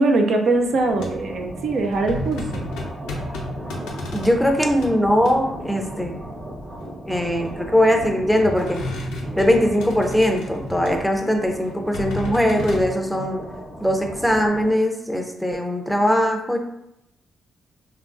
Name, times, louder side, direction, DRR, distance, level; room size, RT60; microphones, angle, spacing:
voice 1, 0.0-2.7, right 2 dB, 65° right, 3 dB, 0.4 m, -21 dB
sound 1, 0.5-14.7, right 1 dB, 30° right, 0.8 m, -36 dB
sound 2, 0.9-1.3 1.7-4.9 5.2-5.6 6.7-7.7 8.0-11.1 11.6-12.8, left 1 dB, 85° left, 0.5 m, -33 dB
voice 2, 4.1-6.2 7.1-8.8 9.4-13.4 13.8-16.6, equal, ahead, 3 dB, 0.5 m, -20 dB
2.9 x 2.4 x 2.4 m, 0.82 s
supercardioid pair, 55°, 0 cm